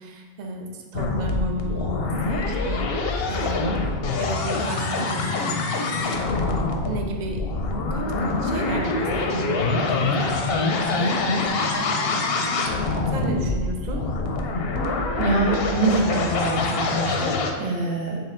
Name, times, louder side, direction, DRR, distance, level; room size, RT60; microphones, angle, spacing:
voice 1, 0.0-3.0 3.3-3.8 4.1-5.6 6.0-6.3 6.8-7.4 7.9-12.2 13.1-14.1, right 1 dB, 50° right, 2 dB, 0.5 m, -33 dB
sound 1, 0.9-17.5, left 3 dB, 65° left, 0.7 m, -25 dB
voice 2, 15.2-18.2, right 3 dB, 75° right, -2 dB, 1.1 m, -24 dB
4.4 x 3.1 x 3.7 m, 1.5 s
omnidirectional pair, 1.3 m